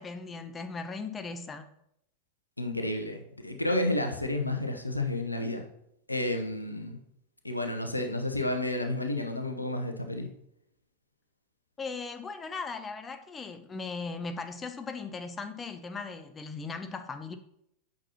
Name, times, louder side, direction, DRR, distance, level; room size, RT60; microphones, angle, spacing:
voice 1, 0.0-1.7 11.8-17.4, left 4 dB, 20° left, 9 dB, 0.5 m, -38 dB
voice 2, 2.6-5.6 6.1-7.0 7.4-10.3, left 1 dB, 85° left, 5 dB, 0.8 m, -31 dB
8.5 x 5.9 x 2.9 m, 0.76 s
figure-of-eight pair, 90°, 0 cm